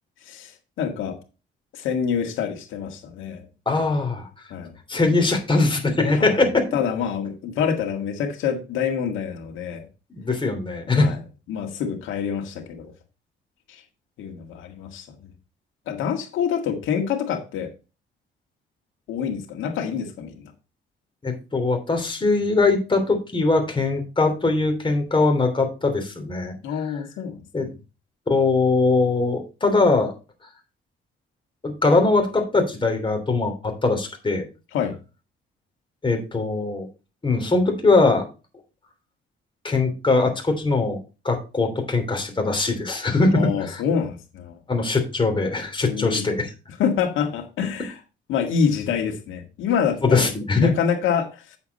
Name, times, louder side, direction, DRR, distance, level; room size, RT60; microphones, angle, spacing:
voice 1, 0.3-1.2 1.7-3.4 4.5-4.7 6.1-6.5 6.7-9.9 10.9-11.2 11.5-12.9 13.7-13.8 14.2-15.3 15.9-17.7 19.1-20.5 26.6-27.7 34.7-35.0 43.3-44.6 45.8-46.2 46.8-48.0 48.3-50.3 50.6-51.6, left 7 dB, 85° left, 1.9 m, -26 dB
voice 2, 3.7-4.3 4.9-6.6 10.1-11.1 21.2-26.5 27.5-27.7 28.3-30.1 31.6-34.4 36.0-36.9 37.2-38.2 39.6-41.0 41.2-43.8 44.7-46.5 50.0-50.7, left 3 dB, 25° left, 3.1 m, -21 dB
8.2 x 7.0 x 4.1 m
cardioid pair, 90°, 20 cm